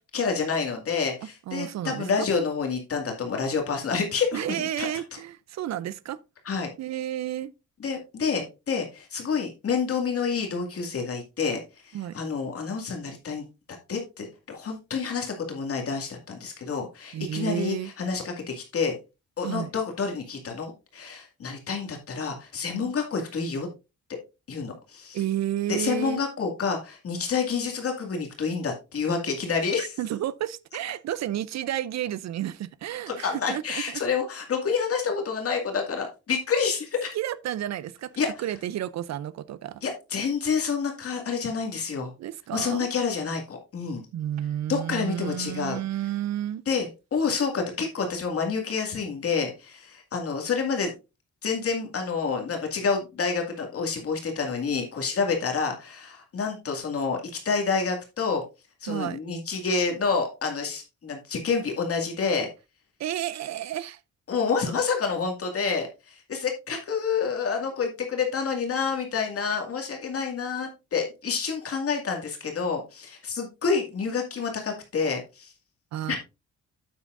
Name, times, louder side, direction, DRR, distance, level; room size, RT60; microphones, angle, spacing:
voice 1, 0.1-4.4 4.8-4.9 6.5-6.7 7.8-13.4 13.9-18.9 19.4-23.7 24.5-25.2 25.7-29.9 33.1-37.1 38.2-38.3 39.8-42.1 42.5-44.0 44.7-45.8 46.7-50.9 51.4-58.4 58.8-62.5 64.3-75.5 76.1-76.2, left 5 dB, 50° left, 2.1 m, -28 dB
voice 2, 1.5-2.3 4.3-6.2 6.8-7.5 11.9-12.2 17.1-17.9 19.4-19.7 22.7-22.9 25.1-26.2 29.8-34.0 37.1-39.8 42.2-42.9 44.1-46.6 58.9-59.2 63.0-64.0 75.9-76.2, right 12 dB, 65° right, 0.5 m, -31 dB
8.8 x 8.4 x 2.5 m
cardioid pair, 115°, 30 cm